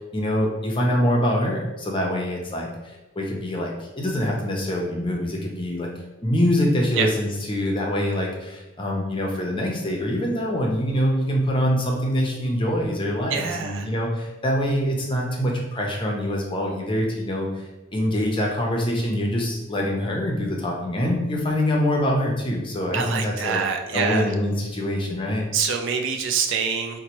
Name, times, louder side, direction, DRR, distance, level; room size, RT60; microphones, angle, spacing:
voice 1, 0.1-2.7 3.2-5.9 6.2-17.5 17.9-23.6 23.9-25.5, equal, 25° left, -1 dB, 0.6 m, -24 dB
voice 2, 13.3-13.9 22.9-24.3 25.5-27.0, right 6 dB, 65° right, 3 dB, 0.4 m, -25 dB
4.2 x 2.2 x 2.9 m, 1.1 s
head